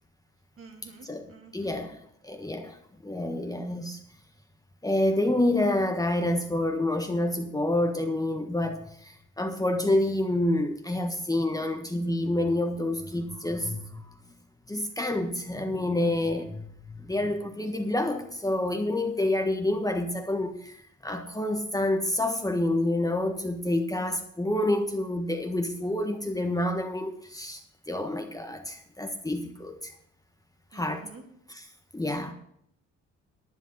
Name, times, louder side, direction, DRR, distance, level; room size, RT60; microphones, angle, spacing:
voice 1, 0.6-1.8 30.7-31.2, right 4 dB, 45° right, 2 dB, 2.9 m, -49 dB
voice 2, 1.5-4.0 4.8-14.2 14.7-29.9 30.7-31.1 31.5-31.6 31.9-32.3, left 1 dB, 10° left, 4 dB, 1.4 m, -28 dB
11.0 x 9.3 x 5.5 m, 0.69 s
cardioid pair, 90°, 30 cm